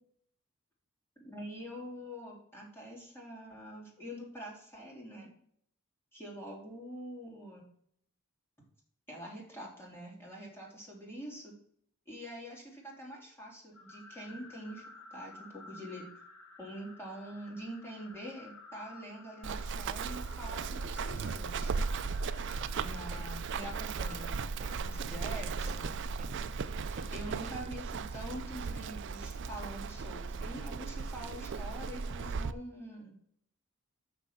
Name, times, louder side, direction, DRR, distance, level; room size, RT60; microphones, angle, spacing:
voice 1, 1.2-5.3 6.1-7.7 9.1-11.5 12.1-14.8 15.1-16.1 16.6-21.8 22.8-26.0 27.1-33.2, equal, 10° left, -3 dB, 3.0 m, -45 dB
sound 1, 13.7-27.1, left 3 dB, 75° left, 1.7 m, -54 dB
Run, 19.4-32.5, right 4 dB, 55° right, 0.4 m, -37 dB
Walk footsteps, 22.6-27.8, right 2 dB, 35° right, 1.0 m, -53 dB
6.3 x 6.2 x 5.9 m, 0.65 s
head